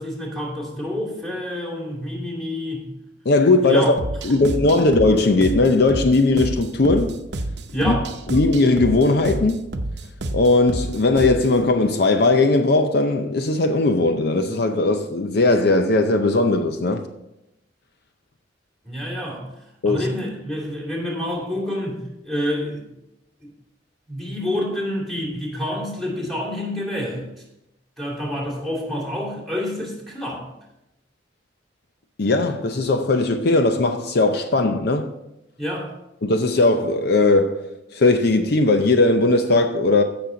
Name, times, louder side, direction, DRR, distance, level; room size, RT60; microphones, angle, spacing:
voice 1, 0.0-2.9 3.7-3.9 4.3-4.5 4.8-4.9 7.7-8.1 18.8-19.5 19.8-22.9 23.4-23.5 24.1-27.3 28.0-30.5 35.6-35.9, left 1 dB, ahead, 2.6 m, -28 dB
voice 2, 3.3-3.9 4.2-7.2 7.9-8.0 8.3-9.7 10.3-17.1 19.8-20.1 32.2-35.1 36.2-40.0, left 2 dB, 55° left, 0.6 m, -18 dB
sound 1, 4.0-11.6, right 1 dB, 65° right, 0.8 m, -29 dB
15.5 x 6.0 x 3.8 m
head